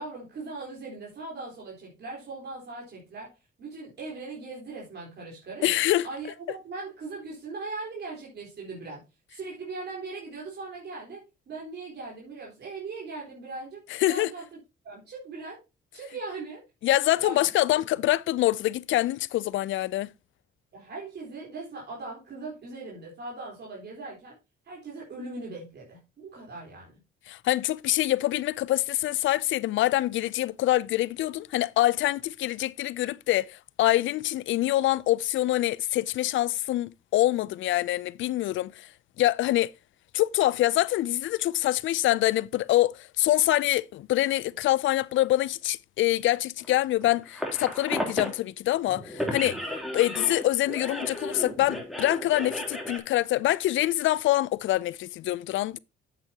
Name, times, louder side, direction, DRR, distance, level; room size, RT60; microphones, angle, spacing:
voice 1, 0.0-3.3 3.6-5.7 6.0-9.0 9.3-14.6 14.8-15.6 15.9-16.6 17.2-17.5 18.0-18.1 20.7-24.4 24.6-26.9, right 3 dB, 60° right, 4.0 m, -39 dB
voice 2, 5.6-6.1 13.9-14.3 16.8-20.1 27.3-38.9 39.2-39.7 40.1-49.6 49.9-55.8, left 15 dB, 75° left, 0.5 m, -25 dB
sound 1, 46.6-48.4 48.8-53.0, equal, ahead, 3.1 m, -34 dB
9.1 x 8.0 x 2.8 m
cardioid pair, 90°, 20 cm